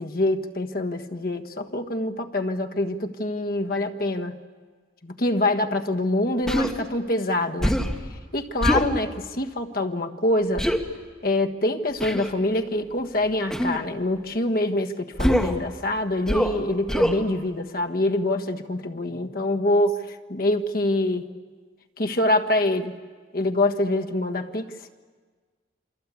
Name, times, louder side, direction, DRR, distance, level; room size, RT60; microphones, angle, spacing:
voice 1, 0.0-4.3 5.0-7.8 8.3-10.7 11.2-21.2 22.0-22.9 23.3-24.7, left 1 dB, 50° left, 4 dB, 1.5 m, -25 dB
Human voice, 6.5-6.7 7.6-8.0 8.6-8.9 10.6-10.8 12.0-12.3 13.5-13.8 15.2-15.6 16.3-16.6 16.9-17.2, equal, 5° left, 1.7 m, -23 dB
28.0 x 25.0 x 8.4 m, 1.5 s
head